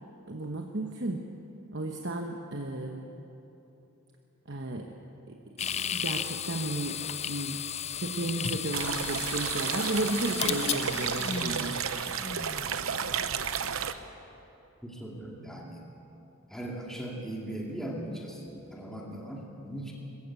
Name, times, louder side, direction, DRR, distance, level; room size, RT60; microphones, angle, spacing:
voice 1, 0.3-1.2 1.7-3.1 4.5-4.9 5.3-7.0 7.2-7.6 8.0-11.8, right 2 dB, 55° right, 2 dB, 1.1 m, -34 dB
sound 1, 5.6-12.8, left 8 dB, 30° left, 0.4 m, -34 dB
sound 2, 8.7-13.9, right 7 dB, 70° right, 0.8 m, -32 dB
voice 2, 14.8-15.8 16.5-19.9, right 1 dB, ahead, -2 dB, 2.2 m, -39 dB
21.0 x 15.0 x 8.3 m, 2.9 s
head